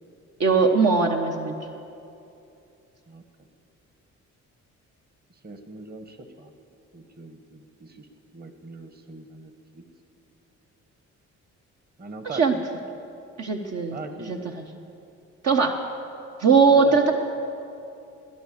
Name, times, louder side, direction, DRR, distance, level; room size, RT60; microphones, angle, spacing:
voice 1, 0.4-1.5 12.2-12.5 13.4-14.0 14.3-14.4 15.4-15.7 16.4-17.1, right 5 dB, 55° right, 2 dB, 1.1 m, -19 dB
voice 2, 5.4-6.5 6.9-9.8 12.0-12.6 13.9-14.5 16.7-17.1, right 4 dB, 30° right, 7 dB, 1.5 m, -40 dB
17.5 x 10.5 x 7.3 m, 2.7 s
cardioid pair, 90°, 30 cm